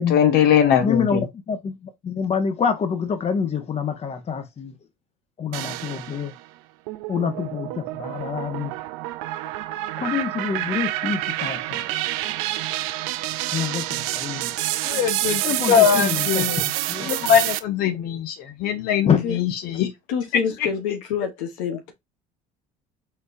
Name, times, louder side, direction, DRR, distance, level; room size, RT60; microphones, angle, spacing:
voice 1, 0.1-1.3 14.8-15.4 15.7-16.6 17.0-19.9, left 8 dB, 70° left, 1.2 m, -20 dB
voice 2, 0.8-4.7 5.4-6.3 7.1-8.7 10.0-11.8 13.5-14.5 15.4-17.1 19.1-19.2 21.7-21.8, left 6 dB, 40° left, 1.3 m, -26 dB
sound 1, 5.5-6.4 6.9-17.6, right 16 dB, 85° right, 0.5 m, -28 dB
voice 3, 20.1-21.9, left 7 dB, 90° left, 1.0 m, -27 dB
4.4 x 4.0 x 2.6 m
supercardioid pair, 85°, 17 cm